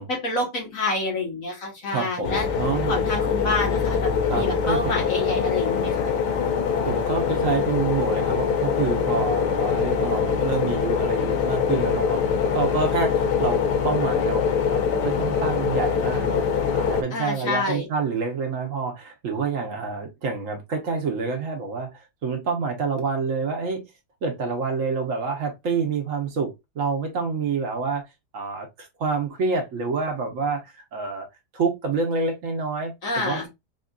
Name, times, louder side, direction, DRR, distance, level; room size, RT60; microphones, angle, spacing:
voice 1, 0.1-2.5 2.9-6.1 17.1-17.9 33.0-33.5, left 2 dB, 55° left, 1.4 m, -28 dB
voice 2, 1.9-3.1 4.3-5.0 6.8-16.4 16.7-21.9 22.2-23.8 24.2-28.0 28.3-31.3 31.5-33.5, right 4 dB, 55° right, 1.1 m, -27 dB
sound 1, 2.2-17.0, left 6 dB, 90° left, 1.3 m, -23 dB
4.3 x 2.6 x 2.3 m
omnidirectional pair, 1.8 m